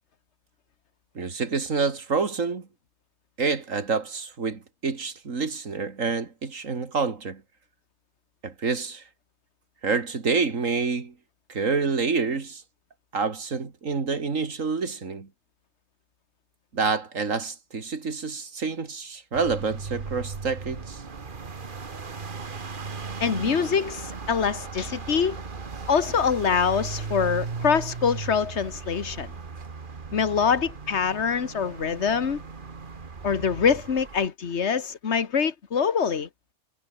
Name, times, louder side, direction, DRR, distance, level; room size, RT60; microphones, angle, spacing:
voice 1, 1.1-2.7 3.4-7.4 8.4-9.0 9.8-11.1 11.5-12.6 13.1-15.3 16.7-21.0, right 4 dB, 80° right, 2.8 m, -27 dB
sound 1, 19.3-34.3, right 4 dB, 40° right, 1.6 m, -37 dB
voice 2, 23.2-25.4 25.9-29.3 30.1-32.4 33.2-36.3, left 6 dB, 60° left, 1.7 m, -24 dB
omnidirectional pair, 1.3 m